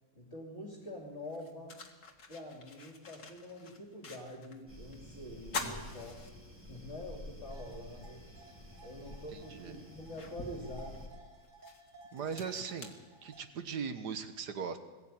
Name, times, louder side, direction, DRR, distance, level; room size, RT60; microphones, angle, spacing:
voice 1, 0.1-1.8 2.3-6.2 6.7-8.2 8.8-11.0 12.2-12.3, left 1 dB, 35° left, -1 dB, 3.1 m, -46 dB
sound 1, 0.6-0.7 1.2-4.6 4.9-5.0 5.4-6.9 7.4-7.5 8.9-9.0 9.6-13.8, left 3 dB, 55° left, 2.3 m, -46 dB
sound 2, 4.7-11.1, left 1 dB, 5° right, 3.8 m, -50 dB
sound 3, 7.5-13.4, right 2 dB, 40° right, 2.7 m, -58 dB
voice 2, 9.3-9.8 12.1-12.9 13.2-14.8, right 6 dB, 65° right, 9 dB, 1.8 m, -39 dB
21.0 x 14.0 x 9.0 m, 1.3 s
omnidirectional pair, 2.0 m